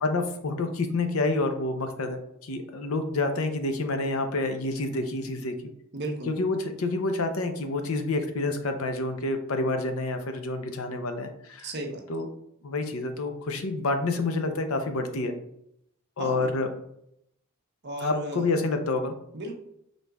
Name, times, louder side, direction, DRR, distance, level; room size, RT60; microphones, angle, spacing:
voice 1, 0.0-5.5 6.3-11.7 12.1-12.3 12.6-15.3 16.2-16.7 18.0-19.1, left 2 dB, 80° left, 7 dB, 0.6 m, -28 dB
voice 2, 5.9-6.3 11.6-12.0 16.2-16.5 17.8-18.6 19.3-19.6, right 1 dB, 55° right, 2 dB, 0.8 m, -34 dB
5.2 x 3.8 x 2.3 m, 0.76 s
head